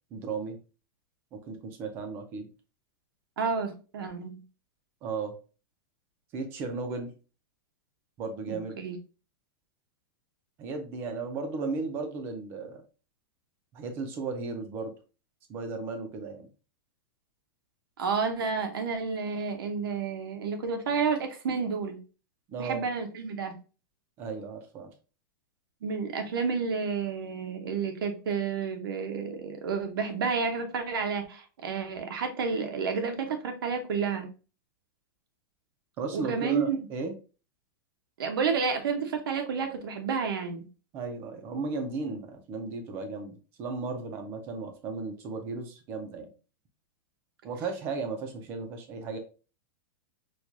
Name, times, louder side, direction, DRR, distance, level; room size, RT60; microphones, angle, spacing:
voice 1, 0.1-0.6 1.3-2.5 5.0-5.4 6.3-7.1 8.2-8.8 10.6-12.8 13.7-14.9 15.5-16.5 22.5-22.9 24.2-24.9 36.0-37.1 40.9-46.3 47.4-49.2, right 4 dB, 20° right, 0.4 m, -35 dB
voice 2, 3.4-4.4 8.5-9.0 18.0-22.0 22.6-23.5 25.8-34.3 36.1-36.8 38.2-40.6, right 5 dB, 90° right, 0.9 m, -30 dB
4.5 x 2.3 x 2.6 m
supercardioid pair, 180°, 11 cm